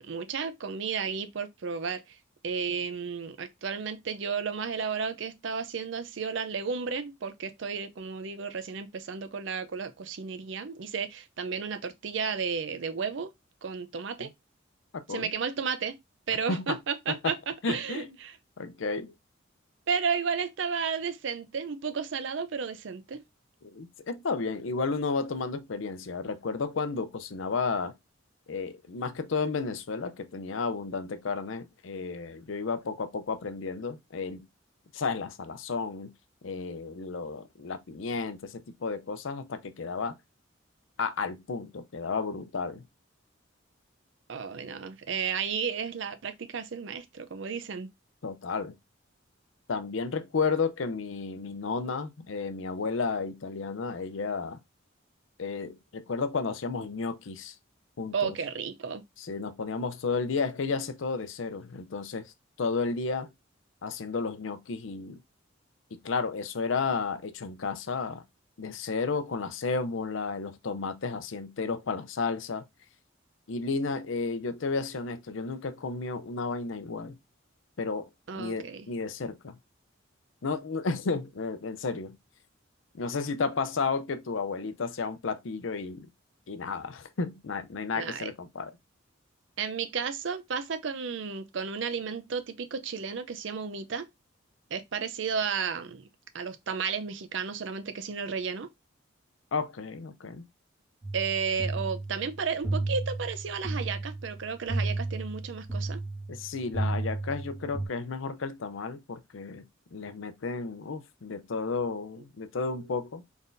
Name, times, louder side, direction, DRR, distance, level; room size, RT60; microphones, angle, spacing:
voice 1, 0.0-2.0 2.4-13.3 13.6-14.3 15.1-16.0 16.3-18.4 19.9-23.2 44.3-47.9 58.1-59.0 78.3-78.9 87.9-88.3 89.6-94.1 94.7-96.1 96.3-98.7 101.1-106.0, right 6 dB, 65° right, 0.5 m, -33 dB
voice 2, 14.9-15.3 16.5-16.8 17.1-17.2 17.6-18.1 18.6-19.1 23.6-27.9 28.5-34.5 34.9-36.1 36.4-40.2 41.0-42.8 48.2-48.7 49.7-54.6 55.4-57.5 58.0-58.3 59.2-62.3 62.6-63.3 63.8-65.2 65.9-68.2 68.6-72.7 73.5-77.2 77.8-78.1 78.4-79.6 80.4-82.2 82.9-86.1 86.5-88.7 99.5-100.4 106.3-109.7 109.9-113.2, left 4 dB, 75° left, 0.6 m, -32 dB
sound 1, 101.0-107.9, right 2 dB, 20° right, 1.4 m, -33 dB
4.1 x 3.5 x 2.6 m
head